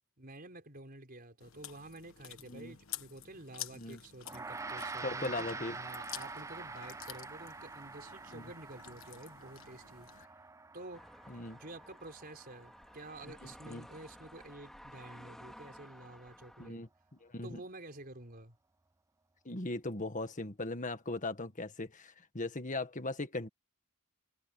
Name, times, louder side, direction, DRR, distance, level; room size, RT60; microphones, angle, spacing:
voice 1, 0.2-10.3 10.7-11.1 11.5-16.8 17.4-18.6, right 2 dB, 45° right, 4.8 m, -50 dB
Chewing mastication, 1.4-10.2, left 11 dB, 65° left, 1.5 m, -50 dB
Gong, 4.3-13.8, right 3 dB, 15° right, 0.4 m, -46 dB
voice 2, 5.0-5.7 8.3-8.5 11.3-11.6 13.3-13.9 16.6-17.6 19.4-23.5, left 2 dB, 35° left, 1.7 m, -39 dB
sound 1, 10.9-16.7, equal, ahead, 3.4 m, -54 dB
head